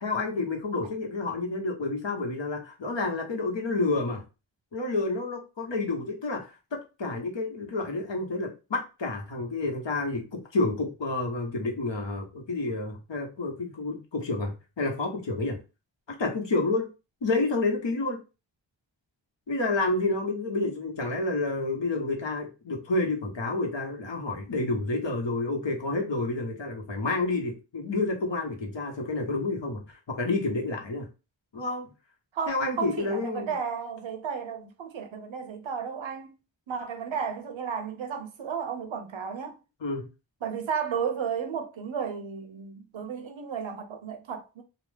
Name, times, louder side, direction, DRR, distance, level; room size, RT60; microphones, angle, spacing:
voice 1, 0.0-4.2 4.7-15.6 16.2-16.9 17.2-18.2 19.5-31.1 31.5-31.9 32.5-33.5 39.8-40.1, left 2 dB, 70° left, 1.0 m, -29 dB
voice 2, 32.3-36.4 36.7-39.6 40.4-44.6, right 7 dB, 80° right, 0.7 m, -33 dB
2.8 x 2.0 x 3.3 m
cardioid pair, 45°, 46 cm